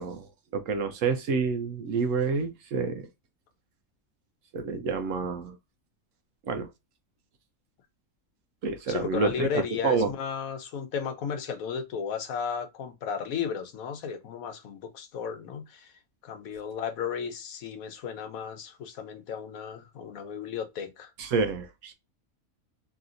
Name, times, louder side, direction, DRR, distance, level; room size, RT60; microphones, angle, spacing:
voice 1, 0.0-3.1 4.5-5.6 6.5-6.7 8.6-10.1 21.2-21.9, right 4 dB, 70° right, 0.9 m, -28 dB
voice 2, 8.9-15.9 16.2-21.1, left 7 dB, 80° left, 1.2 m, -34 dB
3.2 x 2.7 x 2.5 m
omnidirectional pair, 1.4 m